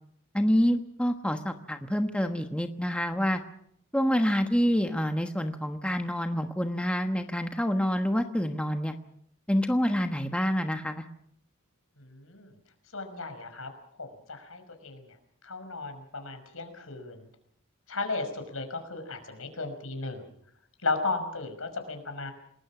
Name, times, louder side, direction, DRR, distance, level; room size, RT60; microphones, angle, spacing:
voice 1, 0.3-3.4 3.9-8.9 9.5-11.0, equal, 5° left, 5 dB, 1.2 m, -27 dB
voice 2, 12.0-12.5 12.9-13.7 14.0-15.2 15.4-17.3 17.9-20.3 20.8-22.3, left 3 dB, 75° left, 7 dB, 5.5 m, -35 dB
28.5 x 20.5 x 6.1 m, 0.71 s
head